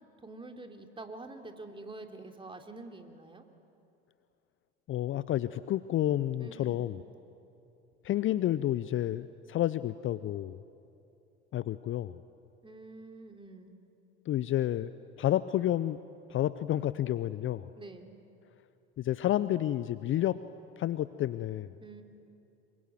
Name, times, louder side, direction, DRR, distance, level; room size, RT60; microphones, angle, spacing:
voice 1, 0.2-3.4 6.4-6.9 12.6-13.8 17.8-18.2 21.8-22.0, right 2 dB, 15° right, 4 dB, 3.3 m, -46 dB
voice 2, 4.9-7.0 8.0-10.6 11.5-12.2 14.3-14.9 15.2-16.0 16.3-17.7 19.0-20.4 20.8-21.7, left 13 dB, 35° left, 15 dB, 0.7 m, -30 dB
26.0 x 23.5 x 9.4 m, 2.7 s
hypercardioid pair, 70°, 34 cm